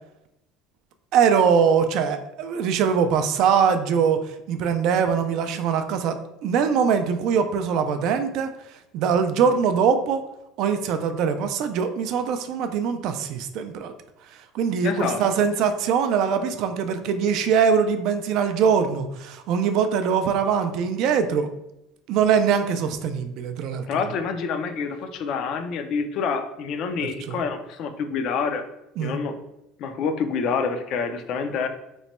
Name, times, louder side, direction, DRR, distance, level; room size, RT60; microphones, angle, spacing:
voice 1, 1.1-6.2 6.4-8.5 8.9-10.2 10.6-13.9 14.5-21.5 22.1-23.8 27.3-27.4 29.0-29.1, right 6 dB, 55° right, 9 dB, 0.3 m, -22 dB
voice 2, 14.8-15.2 23.9-28.6 29.0-29.3 29.8-31.7, left 5 dB, 45° left, 8 dB, 0.4 m, -27 dB
3.0 x 2.1 x 4.2 m, 0.87 s
cardioid pair, 150°, 0 cm